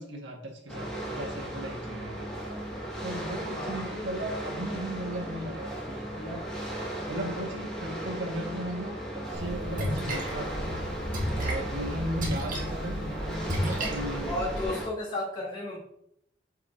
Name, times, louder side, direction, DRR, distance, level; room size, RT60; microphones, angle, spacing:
voice 1, 0.0-2.3 3.0-6.4 7.1-10.9 11.3-14.3, equal, 90° right, -1 dB, 1.8 m, -36 dB
sound 1, 0.7-14.9, right 1 dB, 5° left, 2.0 m, -36 dB
voice 2, 3.6-3.9 12.4-12.6 14.3-15.8, left 2 dB, 30° left, -6 dB, 2.8 m, -33 dB
Splash splatter, 9.3-14.6, equal, 50° right, 1.6 m, -33 dB
7.7 x 5.9 x 2.8 m, 0.73 s
head